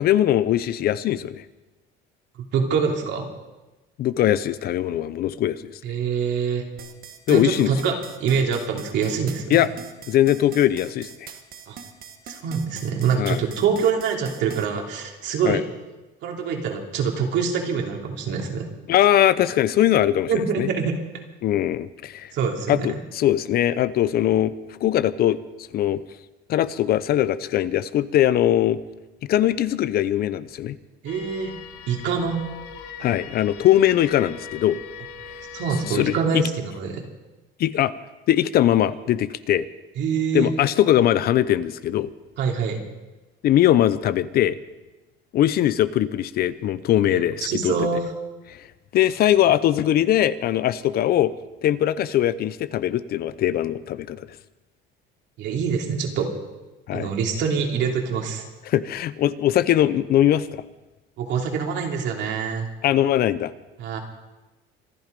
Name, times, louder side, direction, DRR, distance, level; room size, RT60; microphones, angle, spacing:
voice 1, 0.0-1.4 4.0-5.8 7.3-7.7 9.5-9.7 10.1-11.3 13.2-13.4 15.4-15.6 18.9-20.7 21.4-22.3 22.7-26.0 26.5-28.8 29.3-30.8 33.0-34.8 35.9-36.4 37.6-37.9 38.3-39.7 40.3-42.1 43.4-44.6 45.3-47.7 48.5-48.7 48.9-51.3 51.6-54.3 56.9-57.1 58.7-60.6 62.8-63.5, left 12 dB, 50° left, 15 dB, 0.7 m, -21 dB
voice 2, 2.5-3.3 5.8-6.7 7.3-9.7 11.7-11.8 12.3-15.6 16.2-18.7 20.3-20.9 22.3-22.9 31.0-31.5 31.9-32.4 35.5-37.0 40.0-40.5 42.4-42.8 47.1-48.0 55.4-56.3 56.9-58.4 61.2-62.7 63.8-64.0, right 6 dB, 60° right, 1 dB, 3.0 m, -25 dB
sound 1, 6.8-14.7, right 7 dB, 45° right, 1.7 m, -41 dB
sound 2, 31.1-36.2, left 6 dB, 90° left, 1.8 m, -40 dB
25.5 x 10.5 x 5.2 m, 1.1 s
cardioid pair, 140°, 21 cm